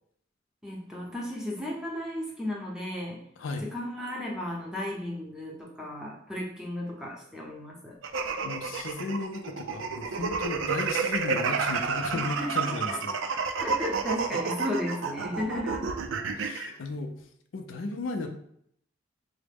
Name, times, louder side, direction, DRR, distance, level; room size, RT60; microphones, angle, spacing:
voice 1, 0.6-3.2 3.6-7.9 12.1-12.5 12.9-13.0 13.6-16.0 16.3-16.8, left 1 dB, 5° right, -3 dB, 0.7 m, -35 dB
sound 1, 8.0-16.7, right 5 dB, 80° right, 0.4 m, -30 dB
voice 2, 8.4-13.2 16.3-17.1 17.5-18.3, left 3 dB, 85° left, 4 dB, 0.5 m, -35 dB
4.7 x 2.1 x 3.4 m, 0.69 s
head